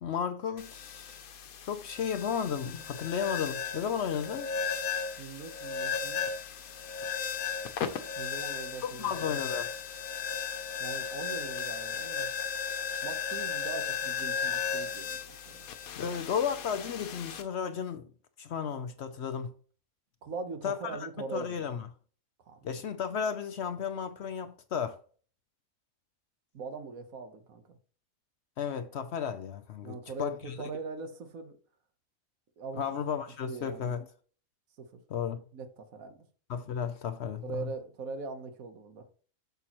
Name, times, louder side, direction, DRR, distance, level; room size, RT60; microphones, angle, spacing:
voice 1, 0.0-1.2 1.6-4.5 8.8-9.7 16.0-18.1 18.4-19.5 20.6-21.9 22.6-25.0 28.6-30.5 32.8-34.0 35.1-35.4 36.5-37.7, left 7 dB, 60° left, 0.8 m, -34 dB
sound 1, 0.6-17.4, left 6 dB, 85° left, 1.3 m, -35 dB
voice 2, 5.2-6.3 8.2-9.4 10.8-12.3 13.0-15.7 20.2-21.6 22.5-22.6 26.5-27.8 29.8-31.6 32.6-32.8 33.5-34.0 34.8-34.9 35.5-36.2 37.4-39.1, right 4 dB, 75° right, 1.5 m, -41 dB
8.4 x 6.9 x 3.0 m
omnidirectional pair, 1.5 m